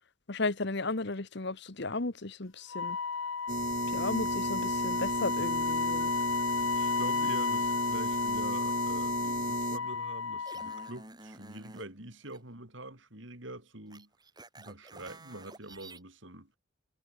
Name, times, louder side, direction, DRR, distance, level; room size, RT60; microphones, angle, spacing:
voice 1, 0.3-3.0 3.9-6.1, left 3 dB, 55° left, 1.3 m, -34 dB
Wind instrument woodwind instrument, 2.7-11.0, left 5 dB, 75° left, 1.1 m, -32 dB
sound 1, 3.5-9.8, right 4 dB, 40° right, 0.4 m, -35 dB
voice 2, 6.6-14.1 14.6-16.5, right 2 dB, 60° right, 4.3 m, -45 dB
sound 2, 10.4-11.9 12.2-12.4 13.9-16.0, right 2 dB, 20° right, 4.3 m, -50 dB
head